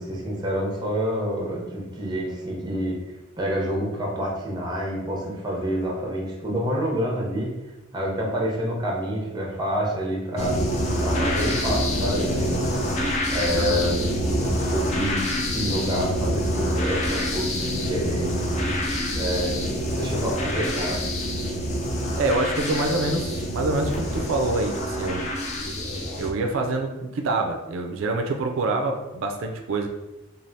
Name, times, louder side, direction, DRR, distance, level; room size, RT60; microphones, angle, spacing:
voice 1, 0.0-3.0 3.4-7.5 7.9-10.6 11.0-12.6 13.3-18.8 19.1-19.5 20.0-21.0, equal, 20° right, -2 dB, 0.6 m, -28 dB
sound 1, 10.4-26.3, equal, 35° left, 0.4 m, -26 dB
voice 2, 13.6-13.9 22.2-25.3 26.2-29.9, right 2 dB, 70° right, 3 dB, 0.4 m, -26 dB
3.3 x 2.4 x 2.6 m, 1.1 s
head